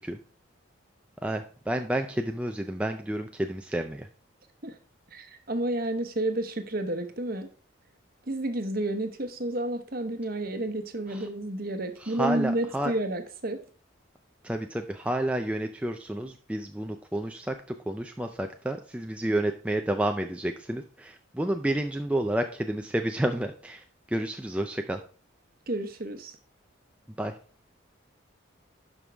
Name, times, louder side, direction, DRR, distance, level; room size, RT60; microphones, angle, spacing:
voice 1, 1.2-4.1 11.1-11.3 12.0-12.9 14.4-17.5 17.9-25.0 27.2-27.4, right 1 dB, 5° right, 4 dB, 0.4 m, -30 dB
voice 2, 5.1-7.5 8.3-13.6 25.7-26.4, right 1 dB, 45° right, 8 dB, 1.0 m, -30 dB
11.0 x 5.4 x 3.4 m, 0.39 s
head